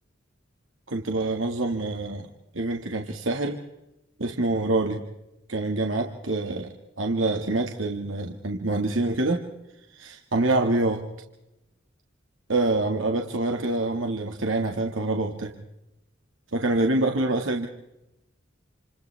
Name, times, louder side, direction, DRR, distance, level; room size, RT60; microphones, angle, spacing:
voice 1, 0.9-2.3 2.5-3.6 4.2-5.0 5.5-9.5 9.9-11.1 12.5-15.5 16.5-17.7, right 2 dB, 85° right, 3 dB, 1.9 m, -26 dB
29.5 x 29.0 x 3.5 m, 0.91 s
head